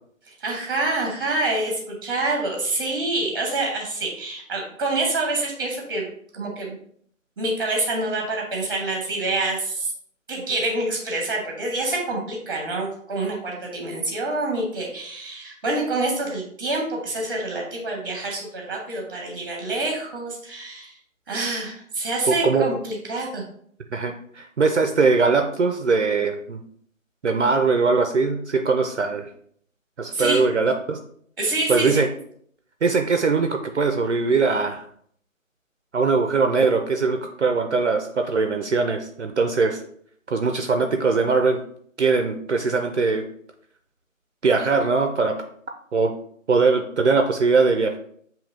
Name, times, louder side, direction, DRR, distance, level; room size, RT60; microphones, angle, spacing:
voice 1, 0.4-6.1 6.3-6.7 7.4-9.9 10.3-20.9 21.3-23.4 30.1-30.4 31.4-32.0, right 2 dB, 15° right, -1 dB, 0.9 m, -27 dB
voice 2, 22.3-22.8 23.9-26.6 27.2-29.3 30.0-31.0 31.7-32.1 32.8-34.8 35.9-39.8 40.3-41.6 42.0-43.2 44.4-45.4 45.9-46.1 46.5-48.0, right 4 dB, 60° right, 5 dB, 0.5 m, -21 dB
7.0 x 2.8 x 2.5 m, 0.64 s
figure-of-eight pair, 150°, 41 cm